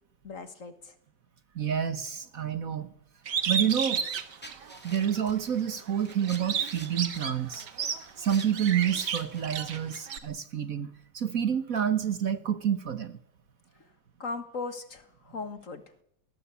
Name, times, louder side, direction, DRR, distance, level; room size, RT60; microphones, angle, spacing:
voice 1, 0.2-0.9 14.2-15.8, left 4 dB, 45° left, 11 dB, 1.9 m, -38 dB
voice 2, 1.5-2.9 3.5-4.0 4.8-7.7 8.2-13.2, right 9 dB, 50° right, 12 dB, 1.5 m, -29 dB
Bird, 3.3-5.2 5.7-10.2, right 7 dB, 70° right, 2.0 m, -32 dB
sound 1, 3.9-9.8, equal, 5° left, 1.9 m, -50 dB
19.5 x 17.5 x 8.4 m, 0.72 s
omnidirectional pair, 2.0 m